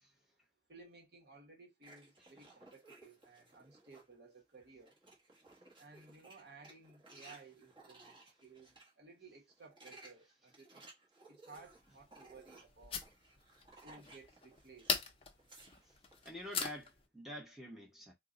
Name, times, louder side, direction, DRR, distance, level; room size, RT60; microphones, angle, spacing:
voice 1, 0.7-5.0 5.8-10.9 11.3-13.0 13.8-15.0, right 3 dB, 55° right, 1.0 m, -58 dB
sound 1, 1.8-4.1 4.5-8.9 9.5-15.0 15.3-16.4, right 2 dB, 25° right, 1.0 m, -60 dB
sound 2, 11.5-17.1, left 5 dB, 30° left, 0.6 m, -42 dB
voice 2, 16.2-18.1, left 1 dB, ahead, 0.9 m, -47 dB
3.7 x 2.1 x 3.7 m
head